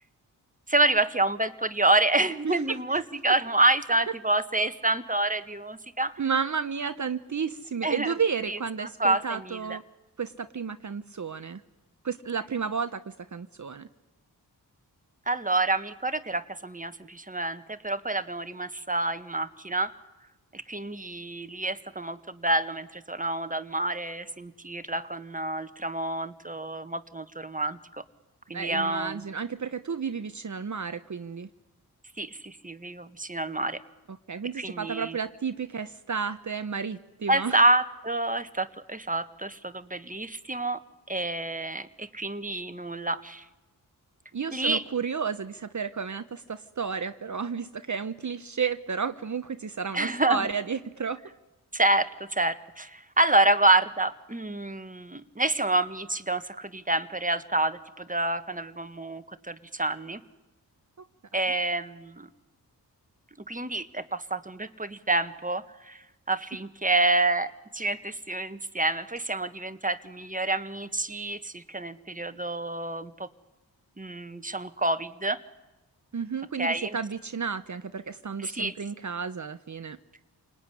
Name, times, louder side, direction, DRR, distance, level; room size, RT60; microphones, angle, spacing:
voice 1, 0.7-6.2 7.8-8.1 8.5-9.8 15.3-19.9 20.5-28.0 28.5-29.2 32.2-33.8 34.6-35.2 37.3-40.8 41.1-43.4 44.5-44.8 49.9-50.5 51.7-60.2 61.3-62.3 63.5-66.0 66.3-73.3 74.0-75.4 76.6-77.0 78.4-78.7, right 2 dB, 20° right, 10 dB, 1.8 m, -28 dB
voice 2, 2.4-2.8 6.2-9.8 10.2-11.6 12.0-13.0 13.3-13.9 28.5-31.5 34.1-37.6 44.3-51.2 76.1-80.0, right 6 dB, 45° right, 10 dB, 1.1 m, -32 dB
28.5 x 19.5 x 10.0 m, 1.0 s
cardioid pair, 40°, 41 cm